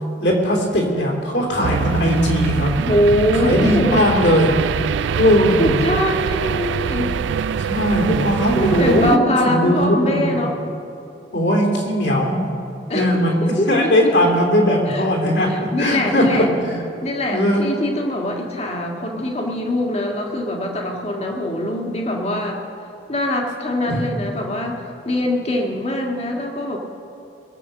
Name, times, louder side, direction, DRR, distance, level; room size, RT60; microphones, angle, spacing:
voice 1, 0.2-2.7 3.3-4.5 5.2-5.8 7.7-10.3 11.3-12.5 12.9-13.4 13.7-16.8 17.3-17.6 23.8-24.0, equal, 65° left, -1 dB, 3.1 m, -18 dB
sound 1, 1.6-9.2, right 7 dB, 75° right, 0.3 m, -23 dB
voice 2, 2.8-4.0 5.6-7.1 8.6-10.6 12.9-13.9 14.9-15.0 15.5-16.5 17.0-22.6 23.1-24.8 25.0-26.8, left 1 dB, 35° left, 1 dB, 1.7 m, -22 dB
21.5 x 7.7 x 6.6 m, 3.0 s
head